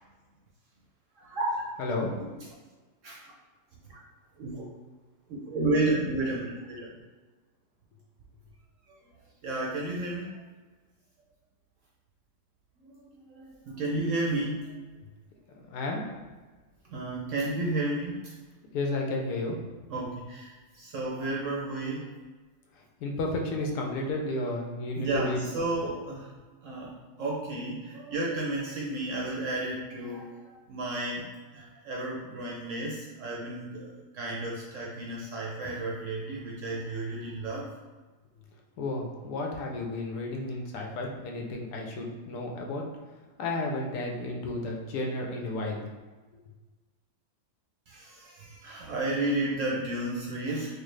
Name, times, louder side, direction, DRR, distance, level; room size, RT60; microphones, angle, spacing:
voice 1, 1.2-1.6 3.0-3.3 3.9-4.0 4.4-4.6 5.3-6.9 9.4-10.4 12.8-13.0 13.3-14.7 16.9-18.3 19.9-22.1 24.9-26.3 26.6-37.7 47.9-50.8, right 2 dB, 65° right, -3 dB, 0.8 m, -32 dB
voice 2, 1.8-2.1 15.7-16.0 18.7-19.6 23.0-25.4 38.8-42.8 43.4-45.9, left 2 dB, 80° left, 1 dB, 1.2 m, -32 dB
4.6 x 2.1 x 3.2 m, 1.3 s
omnidirectional pair, 1.7 m